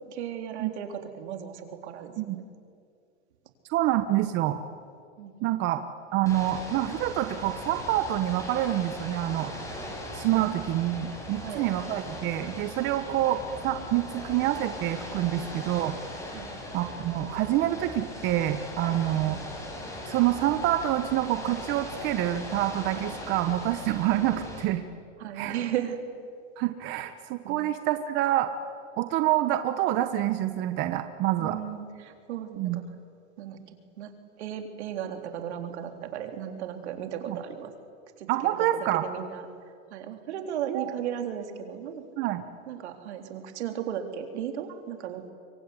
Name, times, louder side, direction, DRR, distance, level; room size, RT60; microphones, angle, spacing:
voice 1, 0.1-2.5 5.2-5.5 10.4-10.6 11.4-11.6 16.3-16.5 23.0-23.1 25.2-26.0 27.4-27.7 31.4-32.8 33.4-34.1 34.4-37.7 38.2-39.5 39.9-42.0 42.7-45.3, right 9 dB, 70° right, 5 dB, 3.9 m, -36 dB
voice 2, 3.7-4.6 5.4-5.8 6.1-9.5 10.1-16.0 16.7-19.4 20.1-24.9 25.4-25.6 26.6-28.5 29.0-31.6 32.6-32.8 37.3-37.4 38.3-39.1 40.7-40.9 42.2-42.4, right 13 dB, 30° right, 9 dB, 1.1 m, -27 dB
Ocean / Boat Water vehicle, 6.3-24.6, left 1 dB, 10° left, 5.8 m, -39 dB
25.0 x 24.0 x 9.8 m, 2.2 s
supercardioid pair, 155°, 35 cm